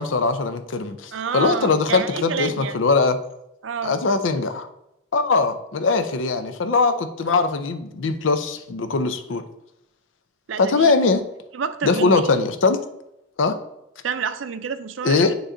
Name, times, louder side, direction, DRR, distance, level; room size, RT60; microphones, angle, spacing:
voice 1, 0.0-3.2 3.8-4.7 5.1-9.4 10.6-11.2 11.8-12.8 13.4-13.6 15.0-15.3, left 4 dB, 85° left, 9 dB, 0.6 m, -21 dB
voice 2, 1.1-2.8 3.6-4.0 10.5-10.9 11.5-12.3 14.0-15.3, right 6 dB, 85° right, 11 dB, 0.5 m, -28 dB
9.0 x 3.1 x 3.8 m, 0.85 s
head